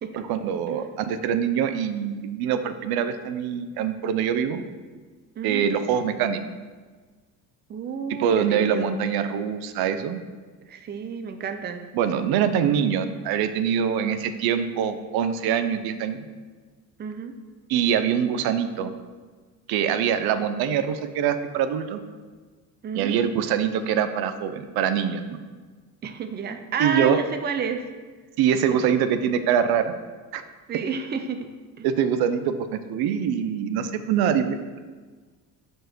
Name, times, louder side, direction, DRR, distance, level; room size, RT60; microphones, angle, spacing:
voice 1, 0.3-4.6 5.4-6.4 8.2-10.2 11.9-16.2 17.7-18.9 19.7-22.0 22.9-25.4 26.8-27.2 28.4-29.9 30.3-30.4 31.8-34.8, right 8 dB, 85° right, 10 dB, 0.7 m, -24 dB
voice 2, 5.4-5.7 7.7-8.9 10.7-11.8 17.0-17.3 22.8-23.2 26.0-27.8 28.7-28.8 30.7-31.5 31.8-31.9, right 6 dB, 30° right, 7 dB, 0.6 m, -30 dB
9.2 x 4.7 x 6.1 m, 1.4 s
cardioid pair, 155°, 36 cm